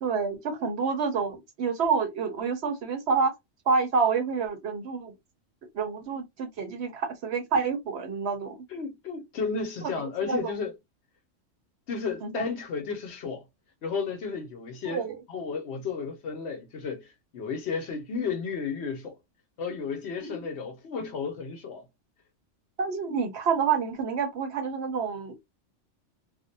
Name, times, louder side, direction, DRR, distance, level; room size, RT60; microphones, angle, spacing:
voice 1, 0.0-3.3 3.7-5.1 5.7-8.6 9.8-9.9 10.2-10.6 12.2-12.5 14.8-15.2 20.2-20.5 22.8-25.4, right 5 dB, 65° right, 0.9 m, -28 dB
voice 2, 8.7-10.8 11.9-13.4 13.8-19.2 19.6-21.8, left 5 dB, 65° left, 0.8 m, -33 dB
2.5 x 2.1 x 2.6 m
omnidirectional pair, 1.3 m